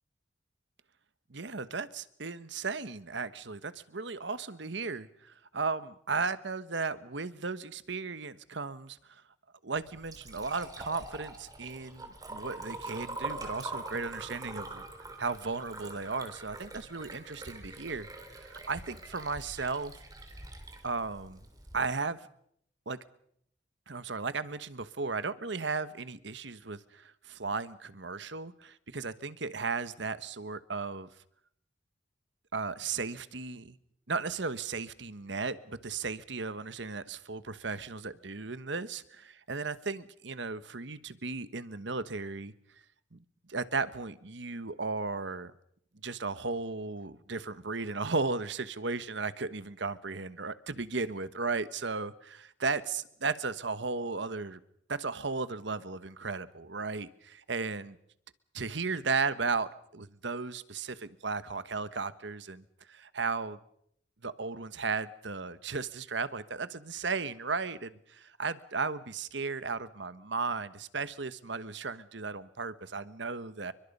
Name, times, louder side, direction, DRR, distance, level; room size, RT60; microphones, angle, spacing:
voice 1, 1.3-9.2 9.6-14.8 15.2-19.9 20.8-21.4 21.7-22.3 22.9-23.0 23.9-31.1 32.5-33.8 34.1-42.5 43.1-43.2 43.5-45.5 46.0-54.6 54.9-58.0 58.5-63.6 64.2-73.7, right 4 dB, 65° right, 14 dB, 1.2 m, -35 dB
Liquid, 9.8-21.8, right 2 dB, 20° right, 3.4 m, -44 dB
29.5 x 23.5 x 5.5 m, 0.71 s
head